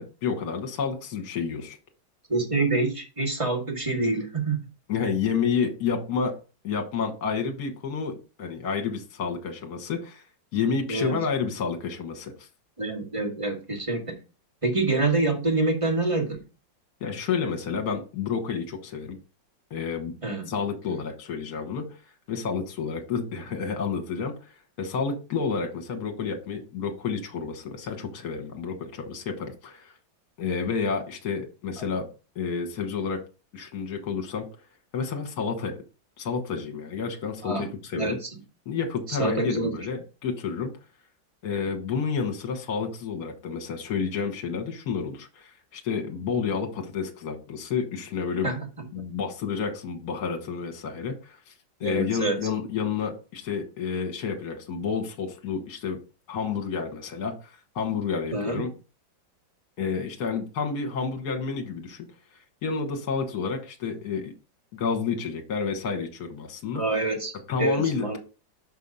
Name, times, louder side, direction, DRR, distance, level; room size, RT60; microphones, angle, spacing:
voice 1, 0.0-1.8 4.9-6.4 6.6-10.2 10.5-12.5 17.0-19.2 19.7-20.1 20.5-22.0 22.3-30.0 30.4-32.1 32.4-33.2 33.5-34.4 34.9-35.7 36.2-38.2 38.7-40.7 41.4-48.5 48.9-51.5 51.8-56.0 56.3-58.7 59.8-62.1 62.6-64.3 64.7-66.8 67.5-68.2, left 5 dB, 60° left, 5 dB, 1.8 m, -30 dB
voice 2, 2.3-4.6 10.9-11.1 12.8-14.2 14.6-16.4 20.2-20.5 37.4-38.3 39.1-39.8 48.4-49.0 51.8-52.4 58.3-58.6 66.7-68.2, right 2 dB, 20° right, 1 dB, 1.6 m, -27 dB
5.5 x 5.1 x 5.4 m, 0.33 s
omnidirectional pair, 2.0 m